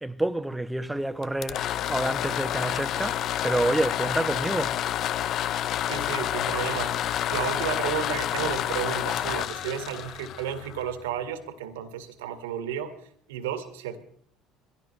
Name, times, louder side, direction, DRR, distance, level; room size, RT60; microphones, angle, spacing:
voice 1, 0.0-4.8, right 2 dB, 10° right, 1.1 m, -28 dB
sound 1, 1.2-11.0, left 11 dB, 55° left, 0.5 m, -29 dB
voice 2, 5.8-12.9 13.3-14.0, right 9 dB, 80° right, 1.9 m, -33 dB
23.0 x 16.5 x 3.3 m
hypercardioid pair, 65°, 0 cm